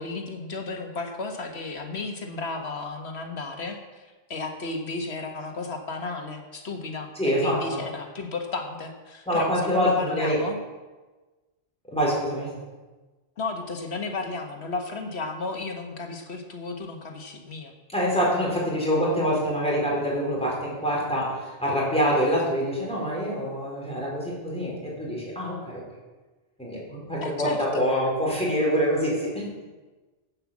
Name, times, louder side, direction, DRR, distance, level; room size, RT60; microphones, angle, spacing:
voice 1, 0.0-10.6 13.4-17.7 27.2-27.9, left 3 dB, 75° left, 4 dB, 1.7 m, -33 dB
voice 2, 7.1-7.8 9.3-10.4 11.9-12.6 17.9-25.8 26.6-29.4, equal, 5° left, -5 dB, 4.8 m, -25 dB
10.0 x 8.8 x 7.3 m, 1.2 s
omnidirectional pair, 1.1 m